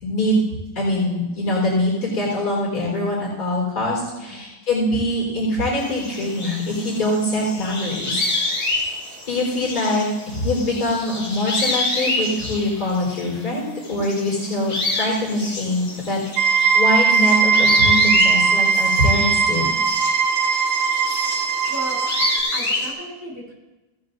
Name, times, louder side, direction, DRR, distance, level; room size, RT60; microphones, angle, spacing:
voice 1, 0.0-0.4 0.7-8.8 9.3-19.6, left 1 dB, 85° left, -4 dB, 4.8 m, -23 dB
sound 1, 5.8-13.5 13.8-22.9, left 2 dB, 60° left, 3.1 m, -28 dB
sound 2, 16.4-22.4, right 5 dB, 90° right, 1.2 m, -19 dB
voice 2, 21.7-22.0 22.5-23.5, equal, 10° right, -5 dB, 3.3 m, -35 dB
17.0 x 10.0 x 2.7 m, 1.1 s
omnidirectional pair, 1.6 m